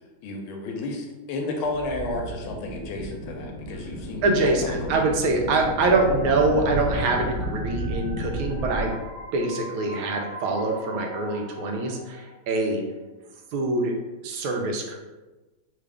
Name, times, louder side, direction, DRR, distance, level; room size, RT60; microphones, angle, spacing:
voice 1, 0.2-4.7, left 2 dB, 80° left, 2 dB, 1.4 m, -32 dB
sound 1, 1.6-8.9, right 1 dB, 15° left, 0.8 m, -33 dB
voice 2, 4.2-9.0 9.3-12.8 13.5-14.0 14.2-15.0, right 2 dB, 80° right, 1 dB, 1.4 m, -24 dB
sound 2, 5.7-12.6, left 1 dB, 55° right, 1.1 m, -42 dB
3.6 x 2.4 x 3.3 m, 1.1 s
omnidirectional pair, 2.3 m